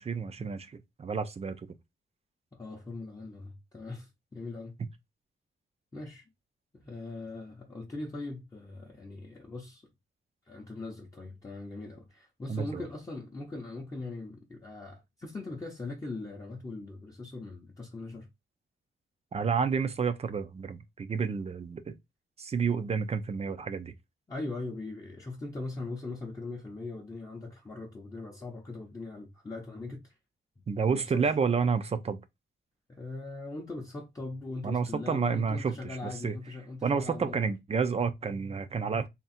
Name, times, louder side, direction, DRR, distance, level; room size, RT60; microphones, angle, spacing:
voice 1, 0.0-1.6 12.5-12.8 19.3-21.9 22.4-23.9 30.7-32.2 34.6-36.4 36.8-39.1, right 5 dB, 30° right, 0.4 m, -30 dB
voice 2, 2.5-4.8 5.9-6.2 6.7-9.8 10.5-18.3 24.3-30.1 30.8-31.3 32.9-37.5, left 3 dB, 15° left, 0.7 m, -40 dB
3.6 x 2.2 x 4.2 m
wide cardioid pair, 180°, 21 cm